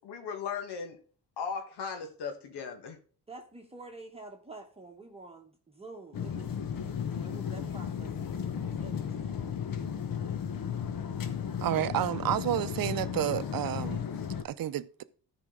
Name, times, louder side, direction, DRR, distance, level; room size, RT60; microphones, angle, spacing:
voice 1, 0.0-1.0 1.4-3.0, left 6 dB, 85° left, 1.5 m, -37 dB
voice 2, 3.3-6.5 7.0-9.4, right 3 dB, 15° right, 1.1 m, -48 dB
sound 1, 6.1-14.4, left 7 dB, 55° left, 1.1 m, -34 dB
voice 3, 11.6-14.1 14.4-15.0, right 12 dB, 60° right, 0.6 m, -30 dB
13.5 x 5.1 x 3.7 m
cardioid pair, 120°, 39 cm